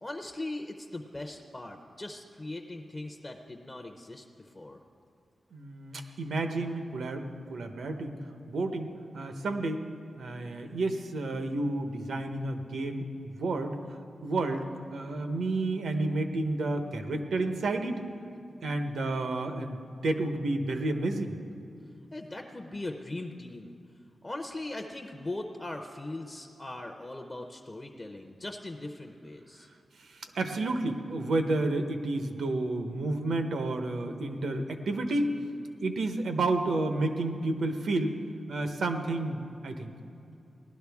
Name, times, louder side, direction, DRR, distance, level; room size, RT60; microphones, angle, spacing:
voice 1, 0.0-4.8 22.1-23.7 24.2-29.7, left 2 dB, 20° left, 4 dB, 0.6 m, -40 dB
voice 2, 5.5-8.1 8.5-9.8 10.2-13.8 14.2-14.7 14.9-18.1 18.6-21.3 30.1-35.3 35.8-38.2 38.5-39.9, right 2 dB, 85° right, 6 dB, 0.9 m, -31 dB
18.0 x 12.0 x 3.5 m, 2.7 s
wide cardioid pair, 150°, 0 cm